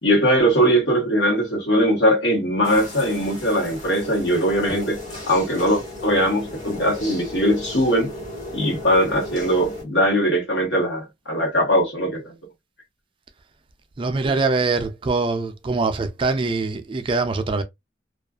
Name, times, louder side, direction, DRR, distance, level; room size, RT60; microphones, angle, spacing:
voice 1, 0.0-8.1 8.5-12.3, equal, 75° left, 1.1 m, -20 dB
sound 1, 2.6-9.8, left 1 dB, 40° left, 1.4 m, -35 dB
voice 2, 14.0-17.6, right 3 dB, 30° right, 0.4 m, -23 dB
2.4 x 2.4 x 2.3 m
head